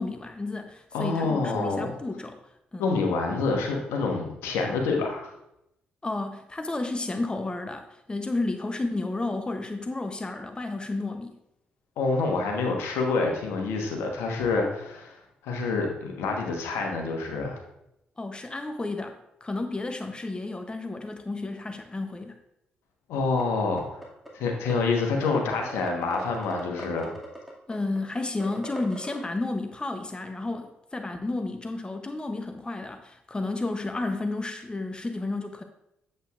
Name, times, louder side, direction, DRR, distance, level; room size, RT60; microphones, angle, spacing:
voice 1, 0.0-2.4 2.7-2.9 6.0-11.4 18.2-22.4 27.7-35.6, left 2 dB, 20° left, 7 dB, 0.7 m, -32 dB
voice 2, 0.9-1.9 2.8-5.3 12.0-15.2 15.4-17.6 23.1-23.8 24.3-27.1, left 3 dB, 70° left, 1 dB, 1.2 m, -27 dB
sound 1, 23.4-23.5 23.8-24.3 24.7-24.8 25.0-25.4 25.6-29.2, equal, ahead, 2.1 m, -40 dB
8.0 x 7.6 x 2.4 m, 0.83 s
hypercardioid pair, 40°, 5 cm